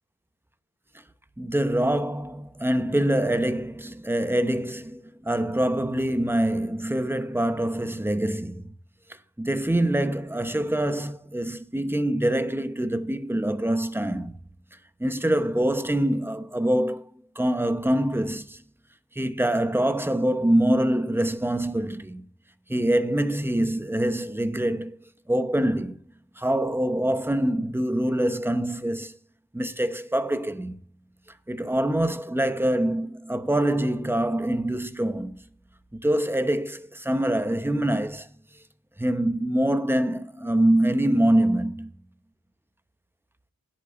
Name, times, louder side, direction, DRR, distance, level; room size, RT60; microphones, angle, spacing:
voice 1, 1.4-8.7 9.1-14.4 15.0-17.0 17.3-18.6 19.1-22.3 22.7-26.0 26.4-29.2 29.5-30.8 31.5-35.4 35.9-38.3 39.0-41.9, right 1 dB, 5° right, 0.9 m, -25 dB
17.0 x 8.5 x 2.6 m
wide cardioid pair, 85°, 35 cm